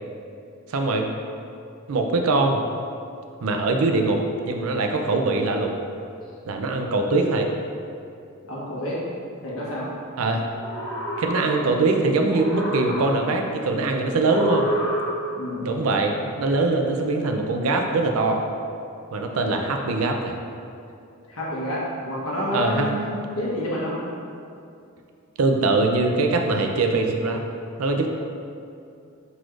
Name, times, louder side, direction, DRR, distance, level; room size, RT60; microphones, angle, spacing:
voice 1, 0.7-1.1 1.9-2.6 3.4-5.8 6.5-7.5 10.2-10.5 11.2-14.7 15.6-18.4 19.1-20.3 22.5-22.9 25.4-27.4 27.8-28.1, right 3 dB, 85° right, 3 dB, 0.5 m, -22 dB
voice 2, 8.5-9.0 9.4-9.8 15.4-15.7 21.3-23.0 23.3-24.0 28.0-28.1, equal, 80° left, -6 dB, 1.1 m, -28 dB
sound 1, 10.5-11.9 12.2-13.5 14.2-15.5, equal, 25° left, 1.3 m, -29 dB
4.6 x 4.0 x 2.5 m, 2.5 s
head